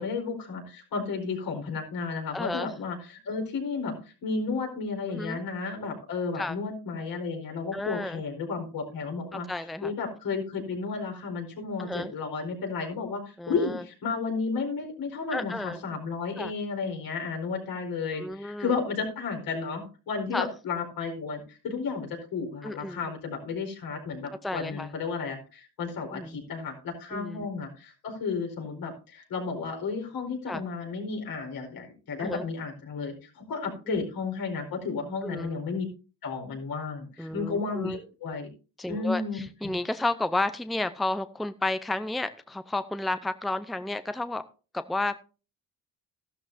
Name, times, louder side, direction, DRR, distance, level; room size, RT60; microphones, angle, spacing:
voice 1, 0.0-35.9 36.2-38.5 38.9-39.7, left 4 dB, 70° left, 2 dB, 4.7 m, -33 dB
voice 2, 2.3-2.7 5.1-5.4 6.4-6.6 7.7-8.2 9.3-9.9 11.8-12.1 13.4-13.8 15.3-15.8 16.4-16.5 18.2-18.7 20.3-20.5 22.6-23.0 24.4-24.9 26.1-26.4 27.1-27.5 30.5-30.6 32.2-32.4 33.9-34.0 35.2-35.6 37.2-38.0 38.8-44.4 44.7-45.2, left 2 dB, ahead, 12 dB, 0.6 m, -32 dB
13.5 x 12.5 x 2.7 m, 0.34 s
cardioid pair, 80°, 36 cm